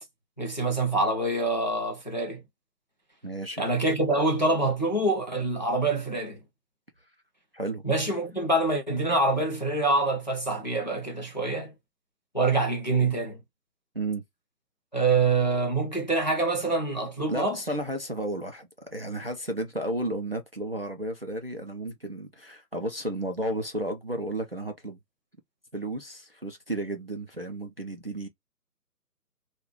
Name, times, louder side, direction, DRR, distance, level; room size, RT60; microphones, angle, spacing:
voice 1, 0.4-2.4 3.6-6.4 7.8-11.7 12.3-13.4 14.9-17.6, right 2 dB, 30° left, 0.5 m, -25 dB
voice 2, 3.2-3.6 7.5-7.8 13.9-14.2 17.3-25.0 25.7-28.3, right 1 dB, 40° right, 0.4 m, -33 dB
3.0 x 2.3 x 3.5 m
figure-of-eight pair, 145°, 48 cm